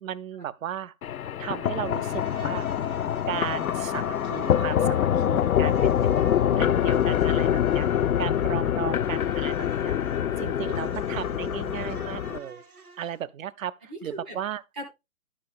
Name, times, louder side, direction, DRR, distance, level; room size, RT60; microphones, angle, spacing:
voice 1, 0.0-0.9 1.4-2.7 3.3-6.2 6.6-7.9 8.2-10.0 10.4-12.6 13.0-14.6, right 10 dB, 65° right, 0.6 m, -35 dB
sound 1, 1.0-12.4, left 10 dB, 75° left, 0.5 m, -25 dB
Insect, 1.8-13.2, right 4 dB, 90° right, 2.1 m, -47 dB
voice 2, 6.1-7.2 11.4-11.5 13.9-14.4 14.8-14.9, equal, 5° right, 0.4 m, -41 dB
11.0 x 5.5 x 3.4 m
figure-of-eight pair, 130°, 43 cm